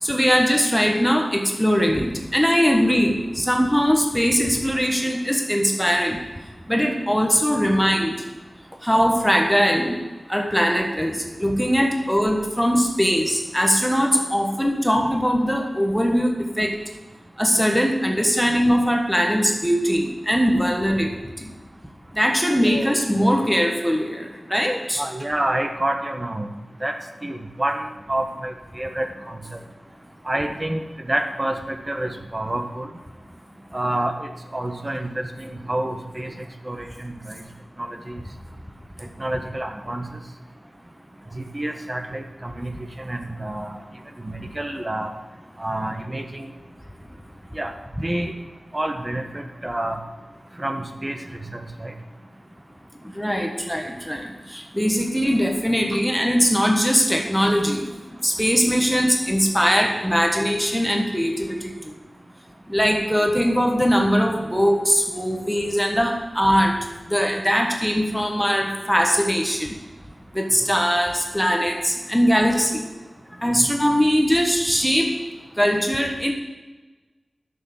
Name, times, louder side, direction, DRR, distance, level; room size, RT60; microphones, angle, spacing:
voice 1, 0.0-6.2 6.7-8.2 8.8-10.0 10.3-16.8 17.4-21.5 22.1-25.0 53.1-57.9 58.2-61.9 62.7-66.8 67.1-69.8 70.3-72.8 73.4-75.2 75.6-76.3, equal, ahead, 2 dB, 1.4 m, -21 dB
voice 2, 22.6-23.2 25.0-26.5 26.8-26.9 27.2-29.4 30.2-32.9 33.7-36.3 36.6-37.4 37.8-38.2 39.2-40.2 41.3-43.8 44.2-45.1 45.6-46.5 47.5-47.7 48.0-48.3 48.7-50.0 50.6-51.9 73.5-73.7, right 1 dB, 25° right, 5 dB, 1.3 m, -28 dB
11.5 x 6.9 x 7.2 m, 1.2 s
wide cardioid pair, 65°, 0 cm